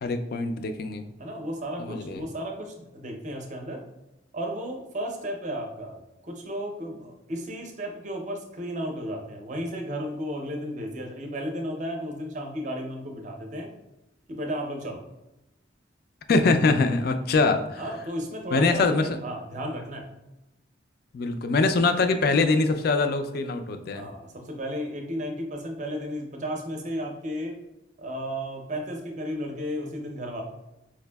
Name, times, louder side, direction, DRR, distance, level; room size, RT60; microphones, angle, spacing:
voice 1, 0.0-1.0 1.8-2.2 16.3-17.8 18.5-19.1 21.1-24.1, left 3 dB, 50° left, 8 dB, 0.3 m, -23 dB
voice 2, 1.2-3.8 4.3-13.7 14.3-15.0 17.8-20.1 23.9-27.6 28.0-30.4, equal, 40° right, 2 dB, 0.5 m, -34 dB
4.7 x 2.6 x 2.2 m, 0.94 s
head